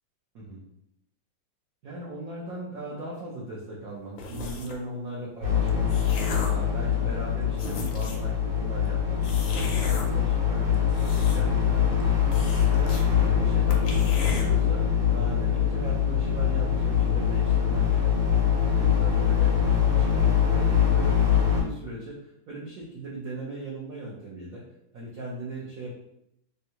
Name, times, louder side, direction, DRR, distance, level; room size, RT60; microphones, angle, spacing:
voice 1, 1.8-5.9 6.4-11.0 11.3-12.4 12.7-18.3 18.7-24.6 24.9-25.9, right 1 dB, 65° right, -5 dB, 0.9 m, -38 dB
sound 1, 4.2-4.8 5.5-6.7 7.2-7.3 7.5-8.3 9.2-10.1 10.7-11.6 11.9-12.0 12.3-13.1 13.4-13.5 13.7-14.5, left 3 dB, 80° left, 1.3 m, -36 dB
sound 2, 5.4-21.6, left 8 dB, 50° right, 1.2 m, -23 dB
3.5 x 2.2 x 2.8 m, 0.78 s
omnidirectional pair, 2.1 m